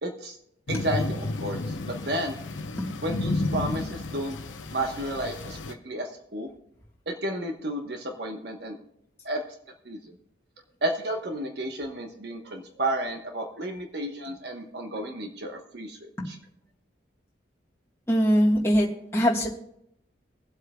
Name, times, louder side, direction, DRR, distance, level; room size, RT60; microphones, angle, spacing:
voice 1, 0.0-0.4 0.7-2.4 3.0-4.4 4.7-6.5 7.1-8.8 9.2-9.4 9.8-10.2 10.8-16.4, right 1 dB, 60° right, 3 dB, 1.1 m, -32 dB
sound 1, 0.7-5.7, left 2 dB, 85° left, 0.8 m, -32 dB
voice 2, 18.1-19.5, equal, 15° left, -3 dB, 1.4 m, -22 dB
22.5 x 8.0 x 2.3 m, 0.74 s
head